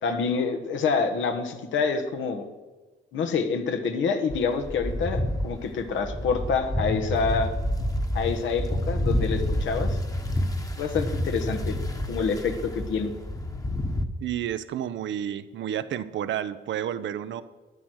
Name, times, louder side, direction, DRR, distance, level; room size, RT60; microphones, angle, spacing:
voice 1, 0.0-2.5 3.1-7.5 8.1-10.0 10.8-11.7 12.1-13.1, left 5 dB, 80° left, 7 dB, 1.5 m, -27 dB
sound 1, 4.3-14.0, left 1 dB, 15° left, 1.3 m, -29 dB
voice 2, 14.2-17.4, right 10 dB, 75° right, 13 dB, 0.8 m, -30 dB
12.5 x 9.9 x 6.4 m, 1.3 s
cardioid pair, 90°, 20 cm